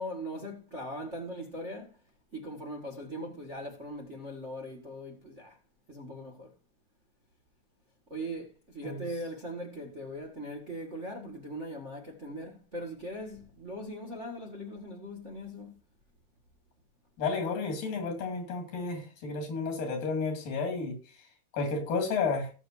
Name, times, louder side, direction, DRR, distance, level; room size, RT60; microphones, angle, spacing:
voice 1, 0.0-1.9 2.3-5.6 5.9-6.5 8.1-15.7, equal, 35° right, 1.3 m, -40 dB
voice 2, 17.2-21.0 21.5-22.5, left 4 dB, 85° left, 4.1 m, -31 dB
18.0 x 7.0 x 2.7 m
omnidirectional pair, 3.9 m